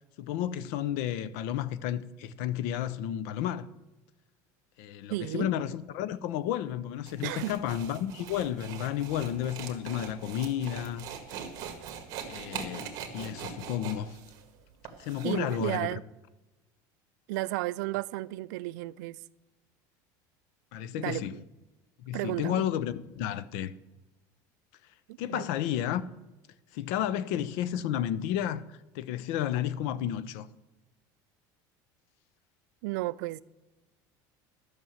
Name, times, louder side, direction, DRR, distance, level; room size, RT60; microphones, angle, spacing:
voice 1, 0.2-3.7 4.8-11.0 11.3-11.5 12.3-14.2 15.0-15.9 20.7-21.4 22.0-23.7 25.2-26.0 26.7-28.6 28.9-30.5, left 11 dB, 65° left, 0.6 m, -32 dB
voice 2, 5.1-5.5 7.2-7.5 15.2-16.0 17.3-19.2 21.0-21.4 22.1-22.6 25.1-25.5 32.8-33.4, right 19 dB, 85° right, 0.4 m, -33 dB
sound 1, 7.1-15.7, right 8 dB, 40° right, 1.7 m, -42 dB
12.5 x 6.2 x 7.2 m
cardioid pair, 175°, 9 cm